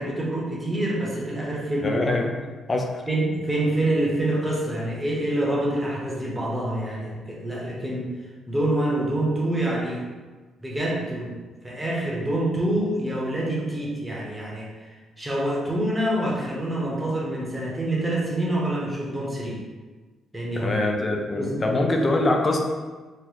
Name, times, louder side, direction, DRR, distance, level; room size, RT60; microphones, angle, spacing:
voice 1, 0.0-2.3 3.1-8.1 8.5-10.0 10.6-11.3 11.6-19.6 20.3-20.7 21.3-21.6 22.0-22.1, right 1 dB, 15° right, -4 dB, 0.9 m, -26 dB
voice 2, 1.8-3.0 20.5-22.6, left 2 dB, 30° left, 2 dB, 0.5 m, -24 dB
3.8 x 2.1 x 3.1 m, 1.3 s
cardioid pair, 90°, 0 cm